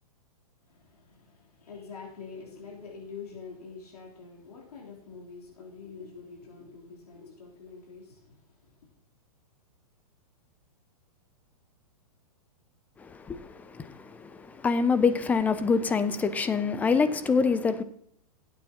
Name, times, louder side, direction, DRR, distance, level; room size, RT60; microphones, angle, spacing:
voice 1, 0.6-8.9, left 5 dB, 80° left, 3.4 m, -46 dB
voice 2, 13.0-17.8, left 5 dB, 10° left, 0.4 m, -26 dB
15.5 x 8.9 x 2.9 m
hypercardioid pair, 145°, 19 cm